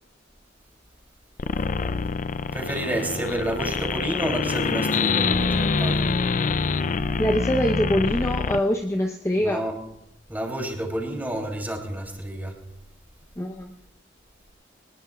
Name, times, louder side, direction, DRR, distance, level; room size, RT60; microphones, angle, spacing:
sound 1, 1.4-8.6, left 4 dB, 45° left, 0.4 m, -25 dB
voice 1, 2.5-6.1 9.4-9.8 10.3-12.6, right 1 dB, 10° right, 1 dB, 3.1 m, -29 dB
voice 2, 7.2-9.6 13.4-13.8, equal, 15° left, 1 dB, 0.8 m, -24 dB
24.0 x 19.5 x 2.4 m, 0.84 s
head